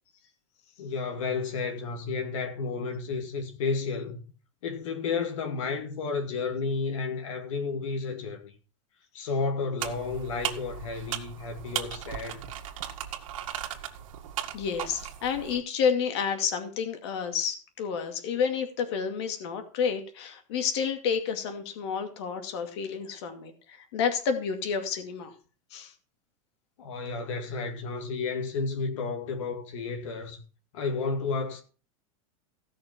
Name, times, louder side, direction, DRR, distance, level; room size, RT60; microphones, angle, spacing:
voice 1, 0.8-4.2 4.6-8.5 9.1-12.5 26.8-30.4 30.7-31.6, left 4 dB, 65° left, 2.3 m, -32 dB
sound 1, 9.8-15.6, right 10 dB, 75° right, 2.0 m, -37 dB
voice 2, 14.5-25.3 25.7-25.9, left 6 dB, 50° left, 2.4 m, -30 dB
16.0 x 6.4 x 6.0 m
supercardioid pair, 180°, 17 cm